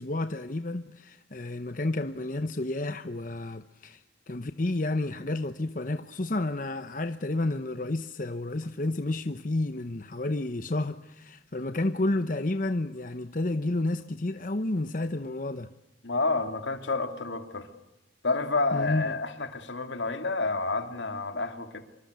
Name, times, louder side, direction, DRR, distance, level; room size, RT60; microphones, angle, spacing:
voice 1, 0.0-15.7 18.7-19.2, left 2 dB, 45° left, 0.9 m, -31 dB
voice 2, 16.0-17.7 18.2-21.8, left 3 dB, 75° left, 2.8 m, -29 dB
26.0 x 25.0 x 8.2 m
head